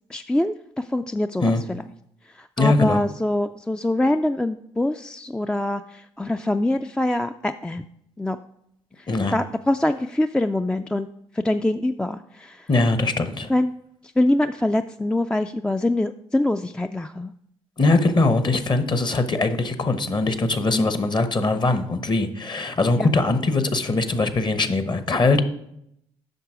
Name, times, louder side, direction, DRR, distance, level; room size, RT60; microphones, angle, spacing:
voice 1, 0.1-1.8 2.3-7.8 8.2-8.4 9.0-11.1 11.3-12.7 13.5-13.7 14.2-17.3 20.7-21.0 23.0-23.1, left 1 dB, 5° left, 9 dB, 0.3 m, -24 dB
voice 2, 2.6-3.0 9.1-9.3 12.7-13.5 17.8-25.4, left 3 dB, 35° left, 11 dB, 1.0 m, -21 dB
7.9 x 5.9 x 4.9 m, 0.75 s
hypercardioid pair, 50°, 14 cm